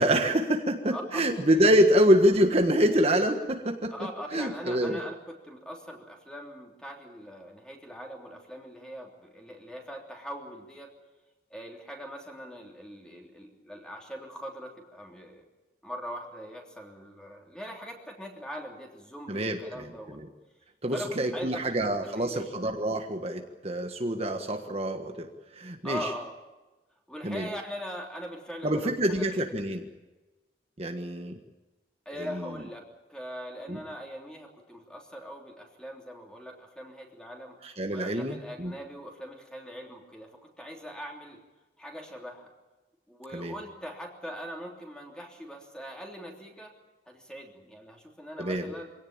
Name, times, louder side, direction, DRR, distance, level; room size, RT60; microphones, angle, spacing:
voice 1, 0.0-3.9 4.3-5.0 19.3-19.6 20.2-20.3 20.8-25.3 25.5-26.0 27.2-27.5 28.6-29.8 30.8-31.3 32.2-32.4 33.7-33.8 37.6-38.7 43.3-43.5 48.4-48.7, equal, 35° right, 4 dB, 1.5 m, -26 dB
voice 2, 0.9-1.2 1.5-1.8 3.9-10.9 11.5-15.4 15.8-20.2 20.9-22.5 25.8-26.3 27.1-29.4 32.0-37.6 37.9-41.4 41.8-42.5 43.1-46.8 47.1-48.9, equal, 5° left, 0 dB, 3.2 m, -41 dB
24.5 x 17.5 x 8.8 m, 1.1 s
head